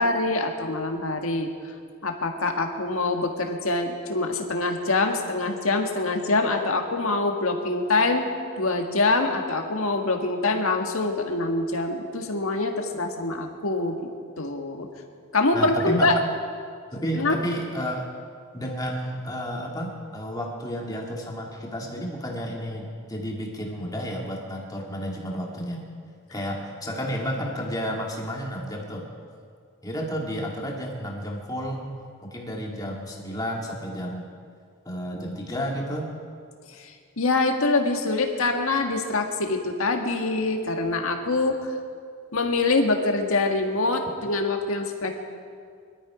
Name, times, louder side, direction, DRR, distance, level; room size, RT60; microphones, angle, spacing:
voice 1, 0.0-1.5 2.0-8.3 8.6-14.0 14.4-14.9 15.3-16.1 17.2-17.4 36.7-36.9 37.2-41.6 42.3-45.1, left 3 dB, 70° left, 3 dB, 1.7 m, -24 dB
voice 2, 15.5-16.1 16.9-18.1 18.5-25.8 26.3-29.1 29.8-32.0 32.2-34.3 34.9-36.1, equal, 15° left, -1 dB, 2.1 m, -31 dB
22.5 x 12.5 x 5.0 m, 2.2 s
head